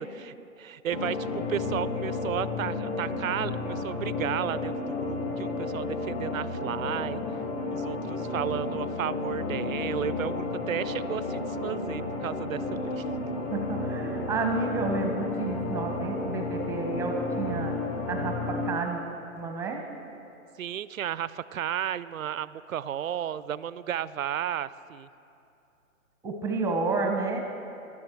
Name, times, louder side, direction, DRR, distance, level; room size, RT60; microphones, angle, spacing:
voice 1, 0.2-7.2 7.7-13.0 20.6-25.1, right 10 dB, 75° right, 17 dB, 0.6 m, -33 dB
sound 1, 0.9-18.7, left 3 dB, 25° left, 1.4 m, -32 dB
voice 2, 13.5-17.8 18.1-19.0 19.4-19.8 26.2-27.4, right 3 dB, 5° right, 3 dB, 0.9 m, -30 dB
17.5 x 12.5 x 4.6 m, 2.7 s
hypercardioid pair, 140°, 41 cm